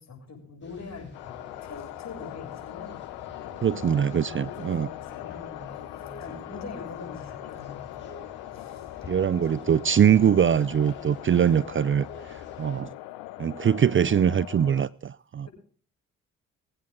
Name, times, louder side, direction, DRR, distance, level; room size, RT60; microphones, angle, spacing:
voice 1, 0.0-3.9 4.2-8.0 8.5-8.9 15.4-15.5, left 4 dB, 50° left, 7.3 m, -43 dB
sound 1, 0.6-12.8, left 3 dB, 30° left, 5.7 m, -47 dB
sound 2, 1.1-14.8, left 16 dB, 80° left, 0.8 m, -41 dB
voice 2, 3.6-4.9 9.1-12.9 13.4-15.5, right 8 dB, 35° right, 0.5 m, -23 dB
23.0 x 8.9 x 3.7 m
hypercardioid pair, 45°, 35 cm